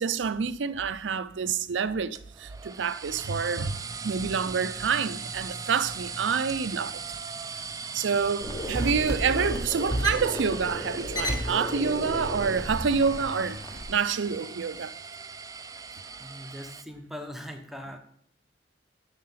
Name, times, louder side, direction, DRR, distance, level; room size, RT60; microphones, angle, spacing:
voice 1, 0.0-3.8 4.0-7.0 7.9-13.6 13.9-14.9, right 6 dB, 80° right, 0.5 m, -27 dB
sound 1, 2.1-16.8, right 5 dB, 20° right, 0.4 m, -39 dB
sound 2, 8.4-13.8, equal, 20° left, 1.2 m, -32 dB
voice 2, 16.2-18.0, equal, ahead, 0.9 m, -40 dB
7.5 x 6.5 x 5.8 m
head